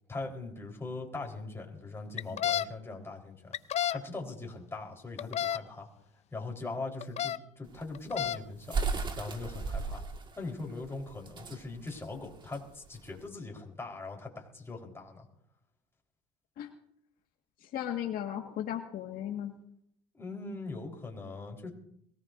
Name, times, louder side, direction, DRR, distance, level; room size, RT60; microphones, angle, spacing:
voice 1, 0.1-3.5 3.9-5.9 6.3-8.8 9.1-10.0 10.4-15.3 20.1-21.7, left 3 dB, 15° left, 1 dB, 4.0 m, -41 dB
sound 1, 2.2-2.6 3.5-4.0 5.2-5.6 7.0-7.4 7.9-8.4, left 10 dB, 40° left, 0.6 m, -30 dB
sound 2, 7.7-13.2, right 4 dB, 25° right, 1.7 m, -36 dB
voice 2, 17.6-19.5, left 11 dB, 60° left, 2 dB, 1.7 m, -36 dB
22.5 x 17.5 x 2.6 m, 0.72 s
supercardioid pair, 100°, 17 cm